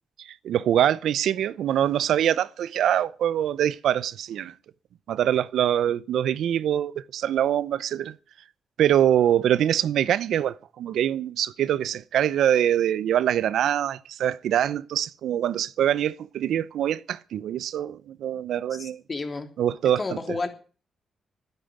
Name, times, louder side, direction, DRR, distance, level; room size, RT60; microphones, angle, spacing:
voice 1, 0.2-4.5 5.1-8.1 8.8-19.0 19.6-20.2, right 10 dB, 85° right, 0.6 m, -24 dB
voice 2, 18.7-19.5 19.9-20.5, left 3 dB, 35° left, 3.3 m, -31 dB
12.5 x 9.8 x 9.2 m
cardioid pair, 80°, 0 cm